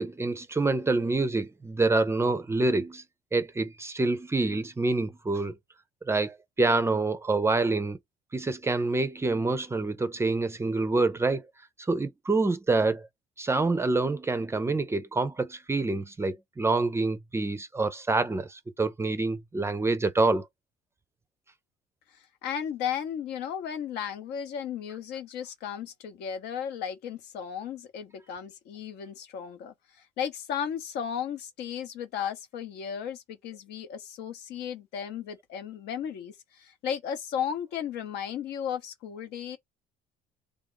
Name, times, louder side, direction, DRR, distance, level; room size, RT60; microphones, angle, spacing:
voice 1, 0.0-3.0 3.3-5.5 6.1-8.0 8.3-11.4 11.9-13.1 13.4-20.4, right 3 dB, 15° right, 0.4 m, -26 dB
voice 2, 22.4-29.7 30.2-39.6, left 8 dB, 80° left, 0.7 m, -35 dB
3.3 x 2.4 x 3.8 m
cardioid pair, 110°, 17 cm